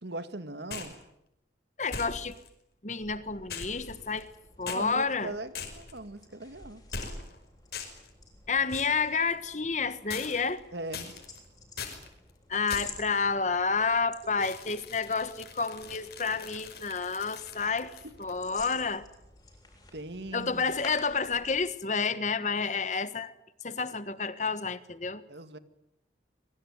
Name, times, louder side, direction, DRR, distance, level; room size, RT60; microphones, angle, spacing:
voice 1, 0.0-0.9 4.7-6.8 10.7-11.1 14.6-14.7 18.0-18.1 19.9-20.8 25.3-25.6, right 2 dB, 75° right, 2.0 m, -40 dB
sound 1, 0.7-1.0 1.9-2.5 3.5-4.3 4.7-4.8 5.5-6.0 6.9-7.4 7.7-8.1 8.7-9.0 10.1-10.6 10.9-11.4 11.8-12.1 12.7-13.1 14.4-18.4, left 5 dB, 60° left, 5.4 m, -41 dB
voice 2, 1.8-2.3 2.8-4.3 4.6-5.3 8.5-10.6 12.5-17.9 18.2-19.1 20.3-23.3 23.6-25.2, left 4 dB, 40° left, 1.4 m, -30 dB
sound 2, 2.9-21.8, left 3 dB, 20° left, 7.6 m, -52 dB
25.0 x 23.5 x 9.5 m
head